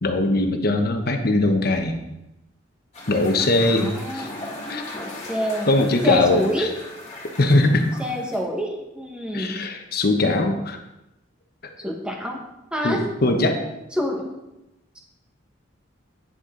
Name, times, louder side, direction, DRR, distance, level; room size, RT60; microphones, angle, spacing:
voice 1, 0.0-2.0 3.1-4.3 4.7-4.8 5.6-6.7 7.4-7.9 9.3-10.8 11.6-11.7 12.8-13.6, left 2 dB, 55° left, 5 dB, 1.0 m, -21 dB
sound 1, 2.9-8.4, left 2 dB, 35° left, 2.2 m, -38 dB
voice 2, 3.6-4.3 4.9-5.7 6.0-6.7 8.0-9.6 11.8-12.4 12.7-13.1 14.0-14.3, equal, 5° right, 0 dB, 1.4 m, -27 dB
9.6 x 6.6 x 3.8 m, 0.94 s
head